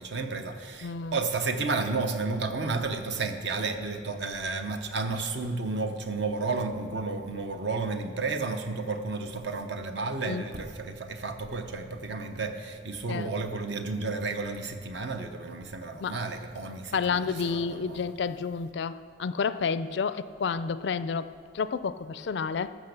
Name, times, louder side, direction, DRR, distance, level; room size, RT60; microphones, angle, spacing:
voice 1, 0.0-18.1, right 3 dB, 60° right, 7 dB, 0.8 m, -32 dB
voice 2, 0.8-1.2 10.2-10.5 13.1-13.3 16.0-16.2 16.9-22.7, left 5 dB, 60° left, 14 dB, 0.4 m, -30 dB
14.0 x 6.1 x 6.8 m, 2.3 s
head